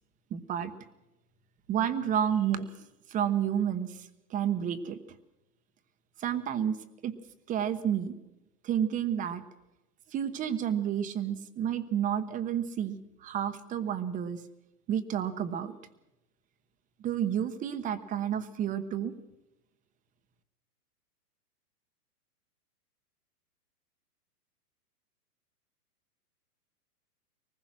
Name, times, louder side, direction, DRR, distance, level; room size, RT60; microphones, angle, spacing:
voice 1, 0.3-0.7 1.7-4.0 4.3-5.0 6.2-7.2 7.5-8.2 8.6-9.4 10.1-14.4 14.9-15.8 17.0-19.1, right 9 dB, 15° right, 10 dB, 1.0 m, -30 dB
24.0 x 20.0 x 6.2 m, 0.95 s
hypercardioid pair, 140°, 47 cm